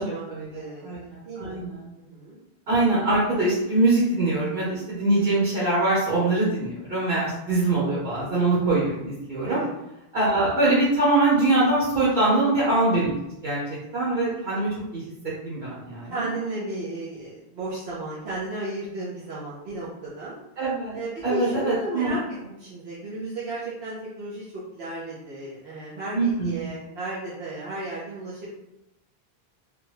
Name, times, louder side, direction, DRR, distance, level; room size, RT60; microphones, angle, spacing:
voice 1, 0.0-1.9 2.7-9.6 10.1-13.2 13.4-13.6 13.9-15.0 15.4-16.3 20.6-21.0 21.2-22.1 26.1-26.7, right 2 dB, 65° right, -8 dB, 1.3 m, -23 dB
voice 2, 0.5-1.6 2.0-2.4 9.4-9.7 12.2-12.6 16.1-20.4 20.9-22.2 22.5-28.5, right 2 dB, 90° right, -9 dB, 1.1 m, -34 dB
3.5 x 2.2 x 3.1 m, 0.89 s
omnidirectional pair, 1.0 m